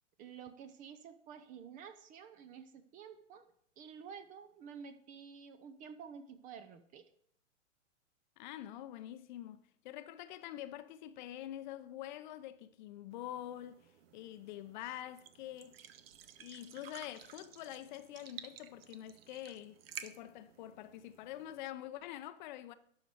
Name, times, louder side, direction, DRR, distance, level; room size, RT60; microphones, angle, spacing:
voice 1, 0.2-7.1, right 7 dB, 20° right, 0.6 m, -51 dB
voice 2, 8.4-15.8 16.4-22.7, left 13 dB, 35° left, 0.7 m, -46 dB
sound 1, 13.1-21.6, right 9 dB, 50° right, 1.0 m, -54 dB
12.0 x 4.9 x 7.6 m
figure-of-eight pair, 110°, 38 cm